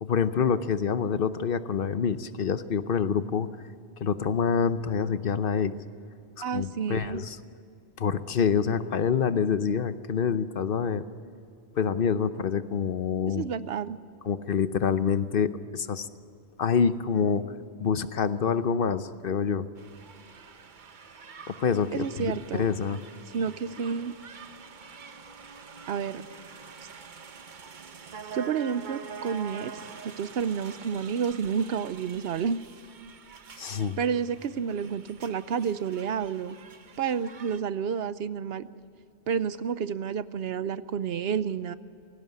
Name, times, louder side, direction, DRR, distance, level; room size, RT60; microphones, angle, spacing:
voice 1, 0.0-3.5 4.0-5.7 6.4-7.4 8.0-11.0 11.8-13.4 14.2-16.1 16.6-17.4 17.8-19.7 21.5-23.0 33.6-34.0, left 6 dB, 60° left, 12 dB, 0.9 m, -26 dB
voice 2, 6.4-7.2 13.3-14.0 21.9-22.7 23.3-24.2 25.9-26.3 28.3-32.6 33.6-36.6 37.0-38.7 39.3-41.7, right 7 dB, 70° right, 15 dB, 0.9 m, -30 dB
sound 1, 19.8-37.6, right 6 dB, 50° right, 1.0 m, -46 dB
18.5 x 16.5 x 9.5 m, 2.6 s
omnidirectional pair, 1.1 m